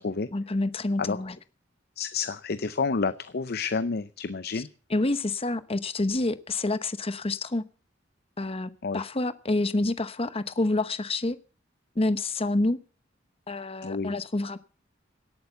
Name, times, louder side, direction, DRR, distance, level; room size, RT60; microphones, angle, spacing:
voice 1, 0.3-1.4 4.5-4.6 4.9-7.6 8.4-11.4 12.0-12.8 13.5-14.6, left 2 dB, 30° left, 0.9 m, -28 dB
voice 2, 2.0-4.7 8.8-9.0 13.8-14.1, left 4 dB, 55° left, 0.6 m, -29 dB
18.0 x 8.7 x 6.8 m
head